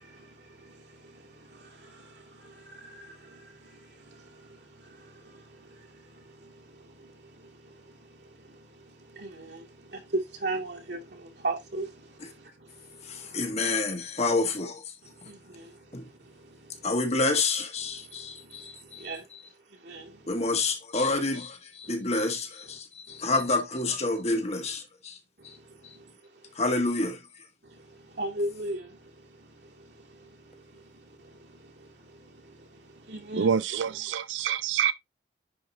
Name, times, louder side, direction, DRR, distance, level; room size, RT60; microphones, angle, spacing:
voice 1, 0.0-13.9 15.0-16.9 18.2-19.3 19.8-20.3 23.1-23.2 25.5-26.1 27.6-33.5, right 2 dB, 65° right, 2.3 m, -40 dB
voice 2, 13.0-14.9 15.9-16.1 16.8-19.4 20.3-25.2 25.4-25.6 25.8-26.0 26.5-27.2, left 3 dB, 35° left, 1.5 m, -29 dB
voice 3, 33.4-34.9, right 7 dB, 80° right, 0.4 m, -26 dB
10.5 x 4.8 x 2.7 m
head